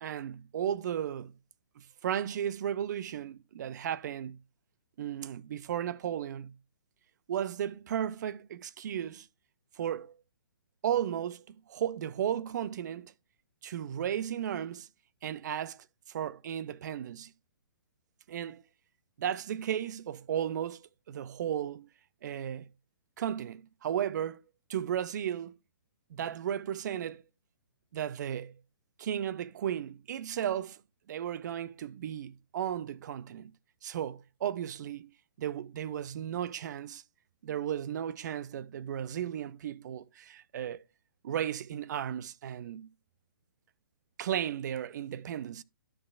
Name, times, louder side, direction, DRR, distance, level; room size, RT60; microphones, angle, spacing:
voice 1, 0.0-1.3 1.8-4.4 5.0-6.5 7.3-9.3 9.8-10.2 10.8-13.1 13.6-14.9 15.2-17.3 18.3-18.6 19.2-20.8 21.1-21.9 22.2-22.7 23.2-24.4 24.7-25.5 26.1-27.2 27.9-28.5 29.0-30.8 31.1-33.5 33.8-35.1 35.4-37.0 37.4-40.8 41.2-42.9 44.2-45.6, right 10 dB, 50° right, 0.6 m, -34 dB
12.5 x 6.5 x 2.4 m
figure-of-eight pair, 135°, 12 cm